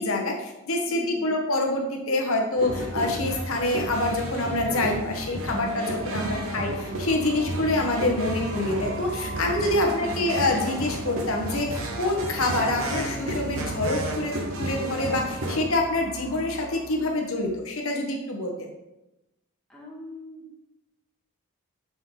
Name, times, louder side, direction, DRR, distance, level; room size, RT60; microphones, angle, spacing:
voice 1, 0.0-18.7, left 2 dB, 75° left, 1 dB, 1.4 m, -26 dB
voice 2, 0.9-1.3 6.2-6.6 9.8-10.2 19.7-20.6, left 1 dB, 5° left, -5 dB, 1.7 m, -41 dB
sound 1, 2.6-15.6, right 1 dB, 80° right, 1.2 m, -33 dB
sound 2, 5.5-17.5, right 2 dB, 55° right, 0.9 m, -39 dB
6.9 x 6.6 x 3.9 m, 0.97 s
head